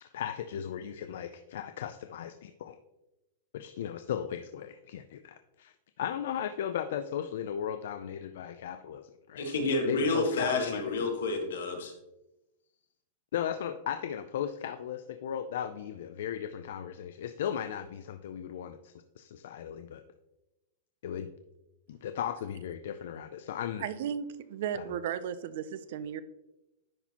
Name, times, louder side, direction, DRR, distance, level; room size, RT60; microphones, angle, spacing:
voice 1, 0.0-2.8 3.5-9.5 9.9-10.8 13.3-20.0 21.0-21.3 21.9-23.9 24.7-24.8, left 9 dB, 55° left, 9 dB, 0.3 m, -36 dB
voice 2, 9.4-11.9, left 3 dB, 80° left, 3 dB, 1.4 m, -29 dB
voice 3, 23.8-26.2, right 9 dB, 50° right, 14 dB, 0.4 m, -35 dB
10.0 x 4.2 x 2.8 m, 0.97 s
supercardioid pair, 180°, 0 cm